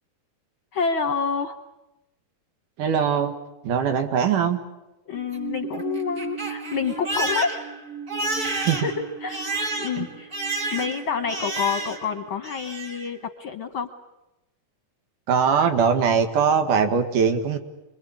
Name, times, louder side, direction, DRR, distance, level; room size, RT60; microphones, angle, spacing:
voice 1, 0.7-1.6 5.0-7.7 8.8-8.9 9.2-10.3 10.7-13.9, left 6 dB, 60° left, 7 dB, 1.4 m, -28 dB
voice 2, 2.8-3.3 3.6-4.6 8.6-8.9 10.0-10.1 15.3-17.6, right 7 dB, 80° right, 6 dB, 3.5 m, -21 dB
Crying sobbing, 5.1-12.1 12.4-13.1, right 3 dB, 30° right, 2.0 m, -30 dB
27.5 x 22.5 x 8.8 m, 0.97 s
omnidirectional pair, 3.6 m